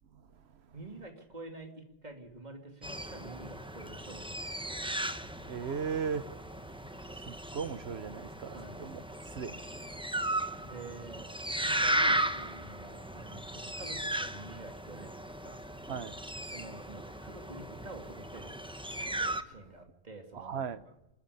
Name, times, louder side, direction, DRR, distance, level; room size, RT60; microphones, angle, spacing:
voice 1, 0.7-4.9 8.5-8.8 10.6-15.6 16.5-18.6 19.4-20.9, right 2 dB, 45° right, 2.8 m, -48 dB
sound 1, 2.8-19.4, right 1 dB, 5° right, 1.0 m, -36 dB
voice 2, 5.4-6.2 6.6-6.7 7.1-9.0 9.3-9.6 15.9-16.2 20.3-20.8, right 6 dB, 85° right, 1.2 m, -37 dB
27.5 x 10.0 x 9.8 m
omnidirectional pair, 1.1 m